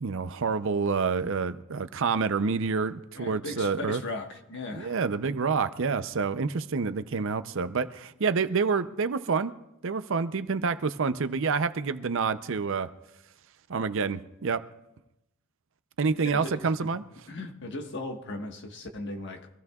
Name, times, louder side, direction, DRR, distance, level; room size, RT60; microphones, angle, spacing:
voice 1, 0.0-4.0 4.7-9.5 9.8-12.9 13.7-14.6 16.0-17.0, right 5 dB, 60° right, 0.6 m, -28 dB
voice 2, 3.2-5.0 16.3-16.7 17.3-19.5, left 2 dB, 55° left, 1.4 m, -37 dB
24.5 x 15.5 x 2.4 m
head